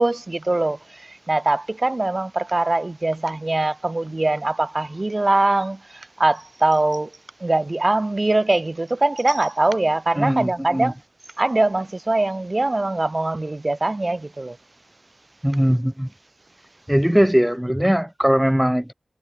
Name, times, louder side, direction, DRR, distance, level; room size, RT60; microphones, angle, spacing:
voice 1, 0.0-7.1 7.4-10.9 11.4-14.6, right 2 dB, 35° right, 2.3 m, -22 dB
voice 2, 10.2-10.9 15.4-16.1 16.9-18.9, equal, 5° right, 1.2 m, -20 dB
cardioid pair, 45°, 0 cm